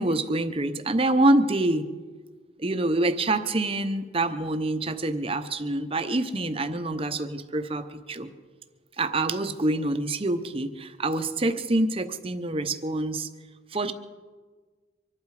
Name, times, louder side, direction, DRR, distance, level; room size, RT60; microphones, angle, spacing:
voice 1, 0.0-1.9 2.6-8.3 9.0-13.3 13.7-13.9, right 2 dB, 30° right, 8 dB, 0.9 m, -26 dB
24.5 x 12.0 x 4.9 m, 1.5 s
head